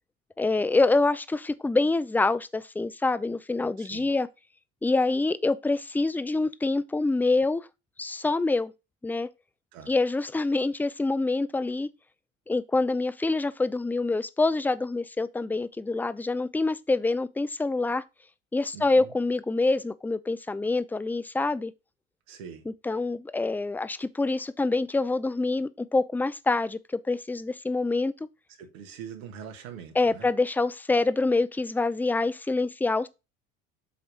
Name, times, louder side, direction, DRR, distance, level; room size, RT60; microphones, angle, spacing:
voice 1, 0.4-4.3 4.8-7.7 8.0-8.7 9.0-9.3 9.9-11.9 12.5-18.0 18.5-21.7 22.7-28.1 29.9-33.1, left 3 dB, 5° left, 0.5 m, -26 dB
voice 2, 3.8-4.1 9.7-9.9 18.7-19.1 22.3-22.6 28.6-30.3, right 7 dB, 80° right, 1.6 m, -43 dB
8.1 x 3.1 x 5.1 m
hypercardioid pair, 65°, 42 cm